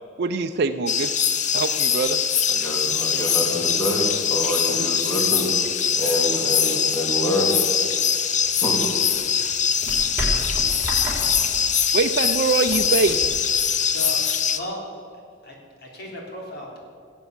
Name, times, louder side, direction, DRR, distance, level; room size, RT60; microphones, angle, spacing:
voice 1, 0.2-1.1 1.5-2.2 11.9-13.4, right 4 dB, 60° right, 6 dB, 0.5 m, -23 dB
sound 1, 0.9-14.6, left 7 dB, 40° left, 0.7 m, -22 dB
voice 2, 2.5-5.5 5.9-7.6 8.6-8.9, equal, 15° left, -1 dB, 3.1 m, -26 dB
sound 2, 8.3-14.3, equal, 10° right, 4.0 m, -33 dB
voice 3, 13.8-14.2 14.5-14.8 15.4-16.8, equal, 55° left, -1 dB, 3.4 m, -35 dB
18.0 x 8.2 x 8.0 m, 2.3 s
head